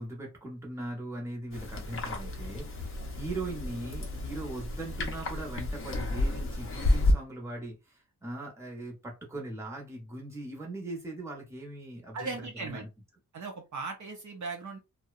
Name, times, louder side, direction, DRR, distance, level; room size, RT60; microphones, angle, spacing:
voice 1, 0.0-12.3 12.6-12.9, right 2 dB, 10° right, 0.8 m, -40 dB
sound 1, 1.5-7.1, left 2 dB, 35° left, 0.5 m, -31 dB
voice 2, 12.1-12.9 13.3-14.8, right 4 dB, 55° right, 0.6 m, -38 dB
2.7 x 2.1 x 2.4 m
wide cardioid pair, 175°, 36 cm